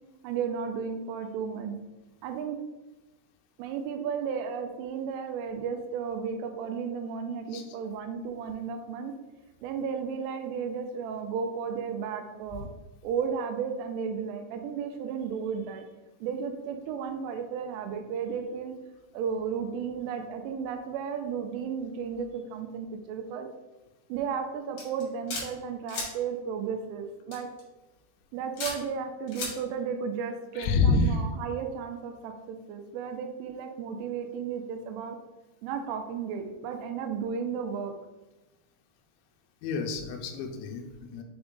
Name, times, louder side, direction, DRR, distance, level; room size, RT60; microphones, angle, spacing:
voice 1, 0.2-1.8 2.2-2.6 3.6-9.1 9.6-12.7 13.0-15.8 16.2-18.7 19.1-23.5 24.1-27.5 28.3-35.2 35.6-37.9, right 6 dB, 85° right, 6 dB, 3.0 m, -34 dB
sound 1, 24.8-25.5 25.9-26.1 27.3-27.6 28.6-28.8 29.3-29.5, left 3 dB, 55° left, 2.6 m, -34 dB
voice 2, 30.6-31.2 39.6-41.2, left 4 dB, 85° left, 3 dB, 2.6 m, -27 dB
7.0 x 3.5 x 3.8 m, 1.1 s
omnidirectional pair, 5.8 m